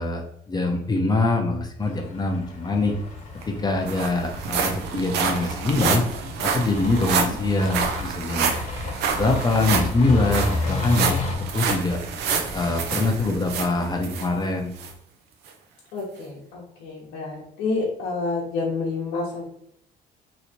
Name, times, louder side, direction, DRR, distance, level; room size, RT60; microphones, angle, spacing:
voice 1, 0.0-3.0 3.5-6.0 6.4-8.5 9.2-11.2 11.5-12.0 12.5-14.7, left 2 dB, 25° left, 2 dB, 0.6 m, -24 dB
sound 1, 1.8-11.3, left 2 dB, 45° left, 1.1 m, -32 dB
sound 2, 3.1-3.2 3.4-14.3 14.8-14.9 15.5-15.6, right 6 dB, 75° right, 0.6 m, -28 dB
voice 2, 15.9-19.4, left 3 dB, 80° left, -4 dB, 0.9 m, -29 dB
3.1 x 3.0 x 2.8 m, 0.73 s
cardioid pair, 110°, 17 cm